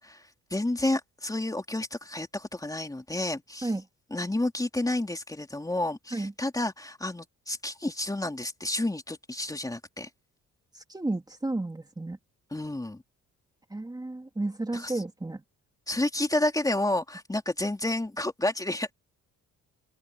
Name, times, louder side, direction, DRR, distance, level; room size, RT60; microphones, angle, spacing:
voice 1, 0.0-3.7 4.1-10.1 12.5-13.0 14.7-15.0 15.9-18.9, left 1 dB, 10° left, 3.3 m, -30 dB
voice 2, 10.7-12.2 13.7-15.4, right 2 dB, 15° right, 3.1 m, -32 dB
open air
cardioid pair, 90°, 30 cm